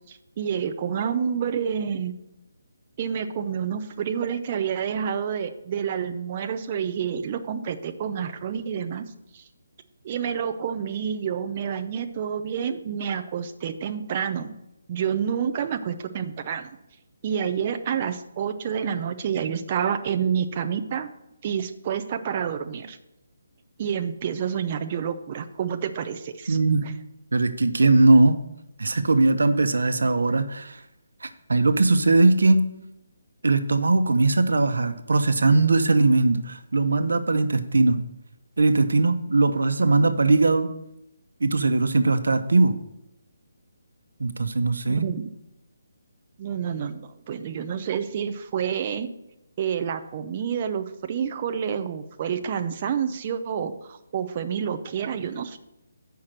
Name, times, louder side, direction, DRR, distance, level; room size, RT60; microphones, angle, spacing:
voice 1, 0.1-2.1 3.0-9.0 9.3-9.4 10.0-14.6 14.9-16.7 17.2-21.1 21.4-23.0 23.8-26.9 44.9-45.3 46.4-49.1 49.6-55.6, right 7 dB, 20° right, 8 dB, 0.4 m, -28 dB
voice 2, 26.5-26.8 27.3-28.4 28.8-30.8 31.2-32.7 33.4-38.0 38.6-40.7 41.4-42.8 44.2-45.1, right 3 dB, 90° right, 9 dB, 0.9 m, -20 dB
7.5 x 5.7 x 6.4 m, 0.89 s
hypercardioid pair, 180°, 0 cm